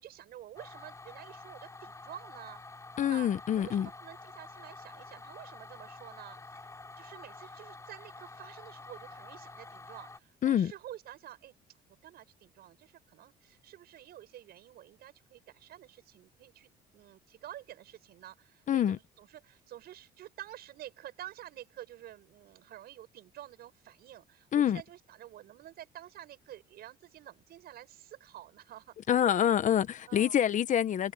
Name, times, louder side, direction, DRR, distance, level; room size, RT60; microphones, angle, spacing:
voice 1, 0.0-2.6 3.0-3.3 3.6-11.5 12.0-28.9 29.3-29.5 30.1-30.4, right 13 dB, 70° right, 7.1 m, -49 dB
sound 1, 0.6-10.2, left 3 dB, 15° left, 5.1 m, -49 dB
voice 2, 3.0-3.9 10.4-10.7 18.7-19.0 24.5-24.8 29.1-31.1, left 10 dB, 50° left, 1.1 m, -26 dB
cardioid pair, 110°, 17 cm